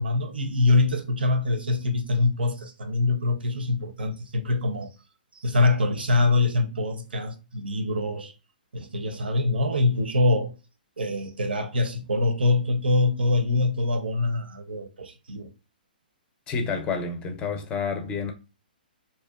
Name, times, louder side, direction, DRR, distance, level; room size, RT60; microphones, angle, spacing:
voice 1, 0.0-4.9 5.3-8.3 8.7-10.5 11.0-15.5, left 2 dB, 85° right, 0.5 m, -24 dB
voice 2, 16.5-18.3, left 5 dB, 20° left, 0.4 m, -29 dB
2.6 x 2.1 x 2.2 m
hypercardioid pair, 135°, 5 cm